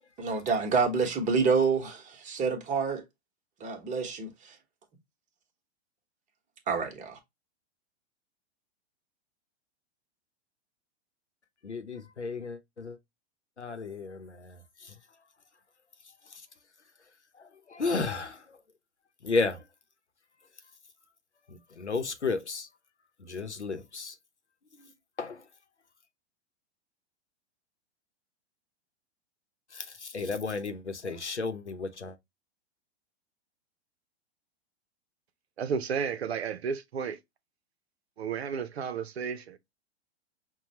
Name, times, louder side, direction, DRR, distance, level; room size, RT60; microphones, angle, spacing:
voice 1, 0.2-3.0 3.6-4.6 6.7-7.2, right 5 dB, 20° right, 1.2 m, -28 dB
voice 2, 11.6-13.0 13.6-15.0 16.3-16.5 17.4-18.6 19.2-19.7 21.5-22.7 23.2-24.2 24.8-24.9 25.2-25.4 29.7-32.2, left 4 dB, 90° left, 0.8 m, -33 dB
voice 3, 35.6-37.2 38.2-39.6, right 6 dB, 70° right, 0.7 m, -32 dB
5.6 x 2.3 x 2.9 m
figure-of-eight pair, 105°, 33 cm